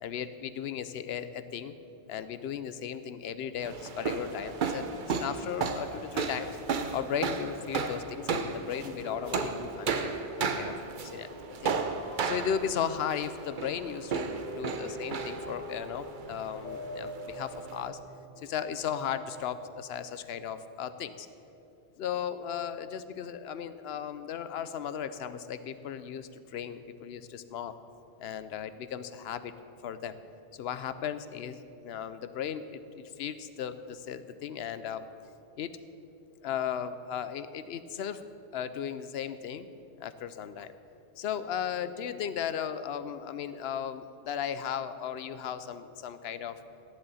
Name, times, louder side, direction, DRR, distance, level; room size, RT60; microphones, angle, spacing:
voice 1, 0.0-1.8 2.1-6.6 6.9-10.7 11.0-11.3 11.6-11.7 12.2-14.3 14.6-18.0 18.4-21.3 22.0-27.7 28.2-29.5 29.8-30.2 30.5-35.1 35.6-35.7 36.4-38.2 38.5-39.7 40.0-40.7 41.2-46.6, left 8 dB, 85° left, 12 dB, 0.8 m, -36 dB
sound 1, 3.6-17.9, right 5 dB, 55° right, 0.8 m, -34 dB
sound 2, 8.3-19.2, equal, 40° left, 1.9 m, -45 dB
14.5 x 10.5 x 4.1 m, 2.8 s
omnidirectional pair, 1.0 m